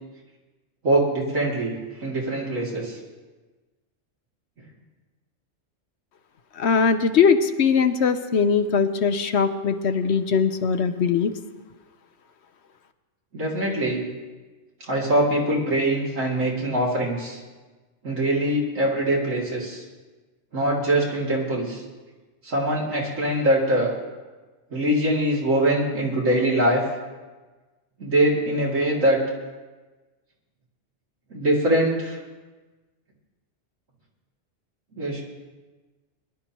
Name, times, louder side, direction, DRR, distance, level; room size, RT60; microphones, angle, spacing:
voice 1, 0.8-1.7 2.0-3.0 13.3-14.0 14.9-17.4 18.0-19.8 20.5-21.8 22.4-23.9 24.7-26.8 28.0-29.2 31.3-32.2 34.9-35.2, right 1 dB, 85° right, -4 dB, 3.2 m, -23 dB
voice 2, 6.6-11.3, left 6 dB, 65° left, 9 dB, 1.0 m, -21 dB
22.0 x 11.5 x 3.0 m, 1.2 s
omnidirectional pair, 1.3 m